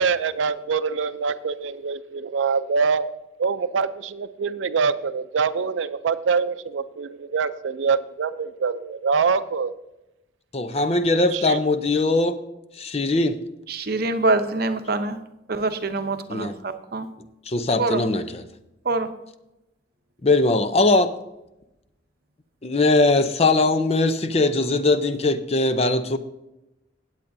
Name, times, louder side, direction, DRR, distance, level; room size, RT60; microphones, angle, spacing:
voice 1, 0.0-3.1 3.4-9.7 11.3-11.6, right 5 dB, 85° right, 14 dB, 0.5 m, -24 dB
voice 2, 10.5-12.4 12.8-13.4 16.3-16.5 17.5-18.4 20.2-21.1 22.6-26.2, left 2 dB, 35° left, 10 dB, 0.6 m, -20 dB
voice 3, 13.7-15.2 15.5-17.1 17.8-18.1 18.8-19.1, right 2 dB, 55° right, 8 dB, 0.8 m, -25 dB
17.5 x 8.1 x 2.7 m, 0.93 s
head